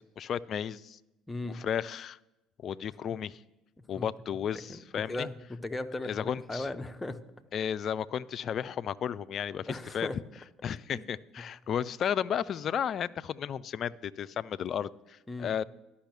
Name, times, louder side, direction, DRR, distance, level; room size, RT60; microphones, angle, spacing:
voice 1, 0.2-1.0 1.5-2.2 2.6-3.4 3.9-5.3 6.0-6.7 7.5-10.1 10.6-15.6, left 8 dB, 45° left, 0.3 m, -33 dB
voice 2, 1.3-1.6 3.8-4.4 4.7-4.8 5.1-7.2 9.7-10.2 10.9-11.1 15.3-15.6, left 2 dB, 15° left, 0.7 m, -37 dB
11.5 x 5.6 x 7.8 m
figure-of-eight pair, 55°, 0 cm